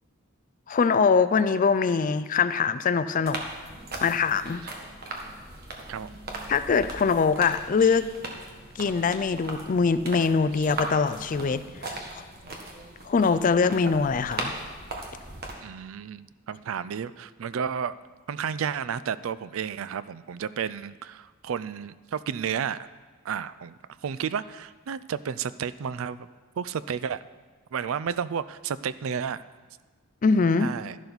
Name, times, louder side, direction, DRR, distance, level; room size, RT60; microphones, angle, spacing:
voice 1, 0.7-3.4 4.0-4.7 6.5-8.1 8.8-11.6 13.1-14.6 30.2-30.7, left 5 dB, 40° left, 13 dB, 0.4 m, -23 dB
sound 1, 3.2-15.5, right 2 dB, 45° right, 1.5 m, -38 dB
voice 2, 15.6-17.9 18.3-22.9 23.2-23.8 24.0-26.3 26.6-27.2 27.7-29.4 30.6-31.0, right 7 dB, 70° right, 16 dB, 0.4 m, -32 dB
12.0 x 11.0 x 4.0 m, 1.4 s
head